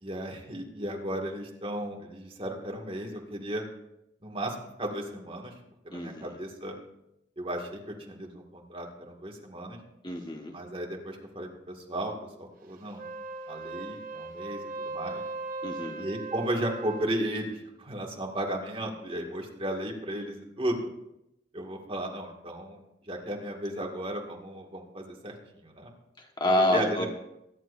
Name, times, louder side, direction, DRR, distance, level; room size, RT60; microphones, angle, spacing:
voice 1, 0.0-3.7 4.2-5.5 5.8-6.8 7.4-9.8 10.5-13.0 13.5-15.2 16.0-20.9 21.5-22.8 23.1-25.9 26.6-27.1, right 1 dB, 30° right, 0 dB, 2.3 m, -35 dB
voice 2, 5.9-6.4 10.0-10.6 15.6-16.0 26.2-27.1, left 1 dB, 25° left, 2 dB, 1.5 m, -28 dB
Wind instrument woodwind instrument, 12.9-17.2, right 3 dB, 50° right, 0.9 m, -38 dB
23.0 x 10.5 x 2.7 m, 0.85 s
head